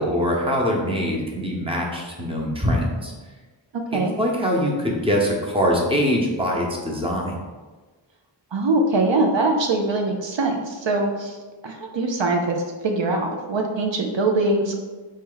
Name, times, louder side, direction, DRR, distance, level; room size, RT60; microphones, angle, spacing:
voice 1, 0.0-3.1 4.2-7.4, equal, 10° right, -1 dB, 0.9 m, -23 dB
voice 2, 3.7-4.1 8.5-11.4 11.6-12.6 12.8-14.8, right 2 dB, 75° right, 2 dB, 0.6 m, -22 dB
4.0 x 3.3 x 3.9 m, 1.3 s
wide cardioid pair, 60°, 46 cm